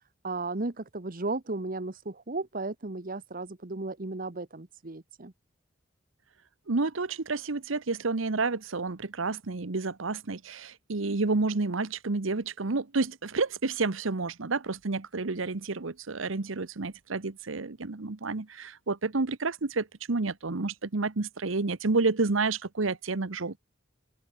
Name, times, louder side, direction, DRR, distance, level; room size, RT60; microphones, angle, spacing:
voice 1, 0.2-5.3, right 2 dB, 45° right, 1.2 m, -35 dB
voice 2, 6.7-23.6, right 3 dB, 85° right, 1.0 m, -30 dB
open air
head